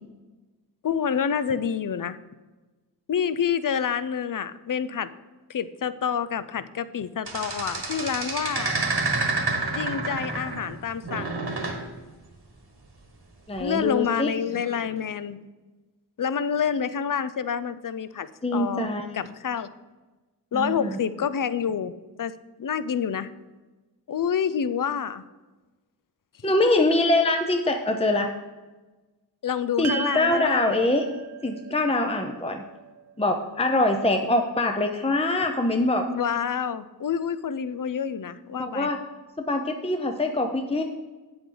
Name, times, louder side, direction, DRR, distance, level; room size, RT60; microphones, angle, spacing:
voice 1, 0.8-2.2 3.1-5.1 5.5-8.8 9.7-11.5 13.6-15.4 16.2-18.9 19.1-19.7 20.5-21.9 22.2-23.3 24.1-25.2 26.6-26.7 29.4-30.7 36.1-38.9, left 7 dB, 50° left, 14 dB, 0.5 m, -28 dB
sound 1, 7.3-10.8 11.0-11.8 13.6-13.8, right 3 dB, 70° right, 1.6 m, -29 dB
voice 2, 13.5-14.3 18.4-19.0 20.5-20.9 26.4-28.3 29.8-31.1 31.4-32.6 33.2-36.1 38.6-39.0 39.5-40.8, left 2 dB, 15° left, 4 dB, 0.7 m, -24 dB
sound 2, 29.8-34.3, right 7 dB, 40° right, 0.5 m, -37 dB
8.8 x 7.8 x 3.9 m, 1.2 s
wide cardioid pair, 40°, 41 cm